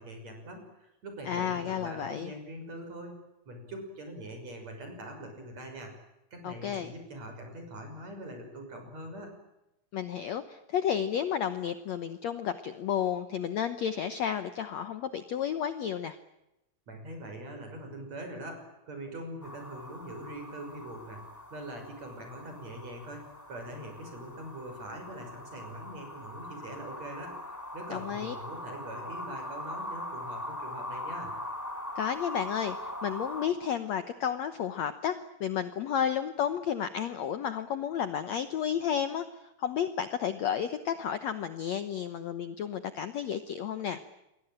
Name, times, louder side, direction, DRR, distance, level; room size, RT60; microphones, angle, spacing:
voice 1, 0.0-3.2 3.5-5.9 6.3-9.3 16.9-21.2 21.5-27.4 27.7-31.3, right 1 dB, 45° right, 5 dB, 7.2 m, -43 dB
voice 2, 1.3-2.3 6.4-6.9 9.9-16.2 27.9-28.4 32.0-39.3 39.6-44.0, left 8 dB, 65° left, 10 dB, 1.8 m, -32 dB
sound 1, 19.4-33.5, left 1 dB, 5° left, 2.3 m, -41 dB
28.5 x 22.0 x 8.9 m, 0.91 s
omnidirectional pair, 4.3 m